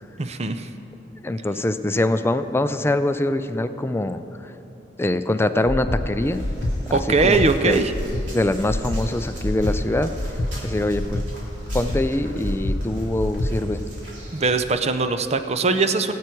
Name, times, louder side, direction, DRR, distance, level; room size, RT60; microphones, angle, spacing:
voice 1, 0.2-0.7 6.9-7.9 14.3-16.1, right 4 dB, 35° right, 9 dB, 0.6 m, -21 dB
voice 2, 1.2-4.2 5.0-6.4 7.2-7.4 7.6-7.8 8.3-10.1 10.6-11.3 11.7-13.8, left 1 dB, 15° left, 10 dB, 0.4 m, -23 dB
Breathing, 5.6-6.0 6.4-6.7 7.1-7.5 7.9-8.3 8.6-9.0 9.4-9.8 10.1-10.5 10.9-11.3 11.7-12.0 12.4-12.8 13.2-13.5, left 1 dB, 55° left, 1.0 m, -26 dB
sound 1, 6.2-14.7, right 1 dB, 75° right, 3.4 m, -43 dB
19.5 x 8.3 x 4.5 m, 2.9 s
head